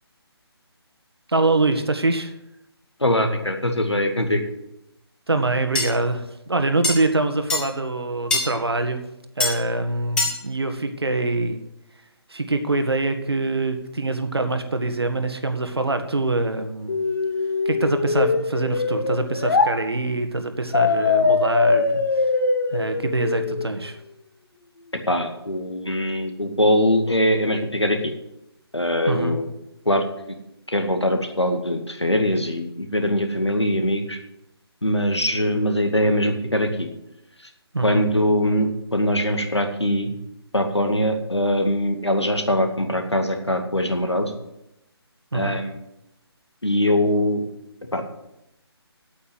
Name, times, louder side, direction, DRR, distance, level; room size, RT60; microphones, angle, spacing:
voice 1, 1.3-2.3 5.3-9.0 9.4-11.6 12.3-17.0 17.6-22.2 22.7-24.0 29.1-29.4 37.7-38.0 45.3-45.6, right 2 dB, 70° right, 7 dB, 1.6 m, -24 dB
voice 2, 3.0-4.4 25.1-28.1 28.7-29.5 29.9-30.0 30.7-34.2 34.8-36.9 37.8-40.1 40.5-44.3 45.3-45.8 46.6-47.4 47.9-48.0, left 1 dB, 85° left, 5 dB, 2.1 m, -22 dB
sound 1, 5.8-5.9 6.8-6.9 7.5-7.6 8.3-8.5 9.4-9.5 10.2-10.4, left 2 dB, 5° left, 1.2 m, -21 dB
sound 2, 16.9-19.7 20.7-23.7, left 4 dB, 45° left, 1.3 m, -22 dB
8.8 x 8.6 x 8.0 m, 0.86 s
figure-of-eight pair, 150°, 14 cm